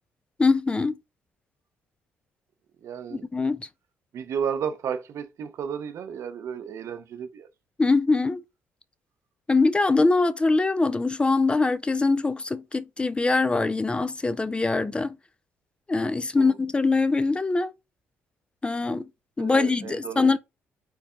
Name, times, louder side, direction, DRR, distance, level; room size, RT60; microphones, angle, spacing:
voice 1, 0.4-0.9 3.1-3.6 7.8-8.4 9.5-15.2 15.9-17.7 18.6-19.0 19.4-20.4, left 3 dB, 20° left, 0.4 m, -23 dB
voice 2, 2.8-3.2 4.1-7.5 16.4-16.6 19.4-20.4, right 7 dB, 65° right, 0.7 m, -33 dB
4.5 x 2.7 x 3.7 m
supercardioid pair, 75°, 5 cm